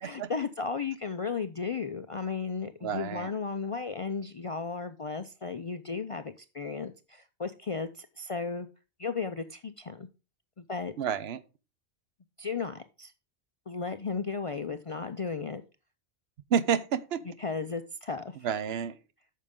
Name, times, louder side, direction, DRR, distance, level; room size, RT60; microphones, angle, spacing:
voice 1, 0.0-8.7 9.0-10.1 10.6-10.9 12.4-13.1 13.7-15.6 17.4-18.4, left 5 dB, 45° left, 0.4 m, -35 dB
voice 2, 2.8-3.3 11.0-11.4 16.5-17.2 18.4-19.0, right 8 dB, 70° right, 0.9 m, -29 dB
9.1 x 6.6 x 3.6 m
omnidirectional pair, 1.1 m